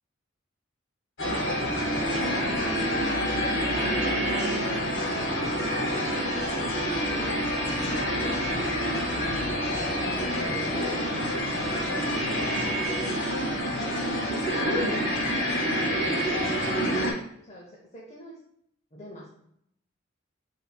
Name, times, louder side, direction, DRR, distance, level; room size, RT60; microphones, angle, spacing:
sound 1, 1.2-17.1, equal, 80° left, 1.4 m, -27 dB
voice 1, 1.6-5.1 7.1-9.0 9.9-12.5 13.0-14.8 15.5-16.1 17.4-18.4 18.9-19.3, equal, 35° left, -2 dB, 0.7 m, -44 dB
4.5 x 4.0 x 2.2 m, 0.72 s
head